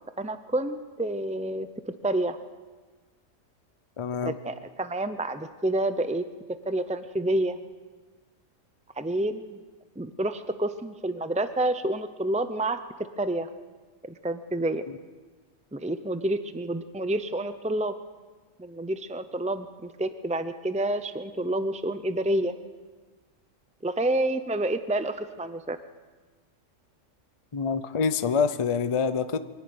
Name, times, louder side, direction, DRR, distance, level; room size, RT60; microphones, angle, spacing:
voice 1, 0.2-2.4 4.2-6.2 6.7-7.6 9.0-9.6 10.0-12.8 13.2-13.5 14.1-14.9 15.7-17.9 18.6-22.5 23.8-25.8, right 1 dB, 10° right, 11 dB, 0.3 m, -29 dB
voice 2, 4.0-4.4 27.5-29.4, left 5 dB, 30° left, 12 dB, 0.6 m, -26 dB
23.5 x 11.5 x 9.6 m, 1.4 s
omnidirectional pair, 1.3 m